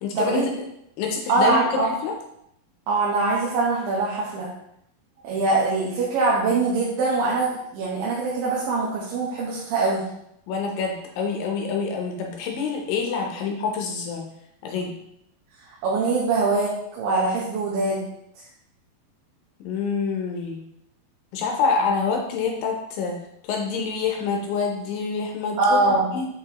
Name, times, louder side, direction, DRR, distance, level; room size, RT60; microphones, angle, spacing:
voice 1, 0.0-0.5 1.0-2.1 10.5-14.2 14.6-14.9 19.6-20.6 21.3-23.2 23.5-26.3, left 5 dB, 75° left, 1 dB, 2.3 m, -26 dB
voice 2, 1.3-1.9 2.9-4.5 5.2-10.1 15.8-18.1 25.6-26.1, right 3 dB, 75° right, -5 dB, 2.5 m, -23 dB
6.6 x 5.1 x 2.9 m, 0.77 s
omnidirectional pair, 4.4 m